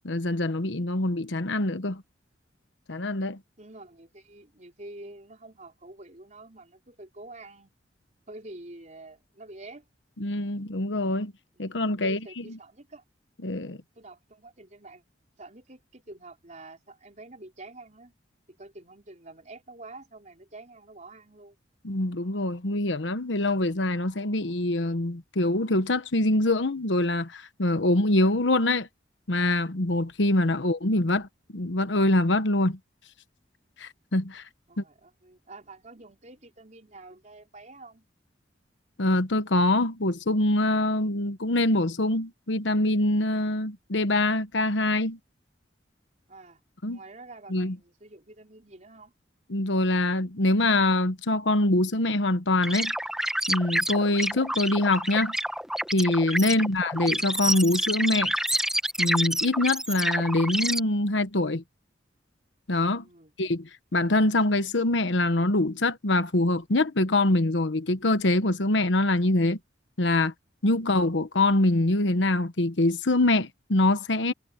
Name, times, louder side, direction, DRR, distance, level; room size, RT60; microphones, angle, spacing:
voice 1, 0.0-2.0 2.9-3.4 10.2-11.3 11.6-12.4 13.4-13.8 21.8-28.9 29.3-32.8 33.8-34.4 34.8-34.9 39.0-45.2 46.8-47.0 47.5-47.7 49.5-52.9 53.5-55.4 55.9-58.3 59.0-61.6 62.7-63.0 63.4-69.6 70.0-70.3 70.6-74.3, left 2 dB, 75° left, 1.2 m, -24 dB
voice 2, 3.6-7.7 8.3-9.9 11.5-13.0 13.7-15.0 15.4-18.1 18.5-21.6 34.7-38.1 41.2-41.3 46.3-46.6 46.9-49.1 56.4-56.7 63.0-63.3, right 2 dB, 40° right, 4.4 m, -47 dB
sound 1, 52.6-60.8, right 1 dB, 5° right, 1.4 m, -28 dB
head